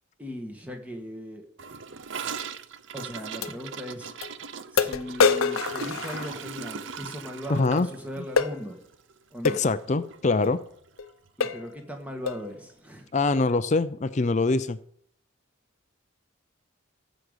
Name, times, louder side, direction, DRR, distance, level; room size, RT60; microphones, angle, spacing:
voice 1, 0.2-1.5 2.9-4.2 4.7-8.8 9.3-9.6 11.4-13.1, equal, 5° right, 4 dB, 1.7 m, -38 dB
Gurgling / Toilet flush, 1.6-9.9 10.1-10.3 10.5-11.0 11.3-11.4 11.6-11.7 12.7-12.8, right 6 dB, 65° right, 0.6 m, -39 dB
sound 1, 2.4-2.5 3.4-3.5 4.2-4.3 4.8-6.7 8.4-8.6 9.5-9.7 10.4-10.6 11.0-11.1 11.4-11.7 12.3-12.5, left 5 dB, 90° left, 0.8 m, -25 dB
voice 2, 7.5-7.9 9.4-10.6 13.1-14.8, left 3 dB, 35° left, 13 dB, 0.5 m, -24 dB
14.5 x 5.2 x 8.1 m, 0.62 s
head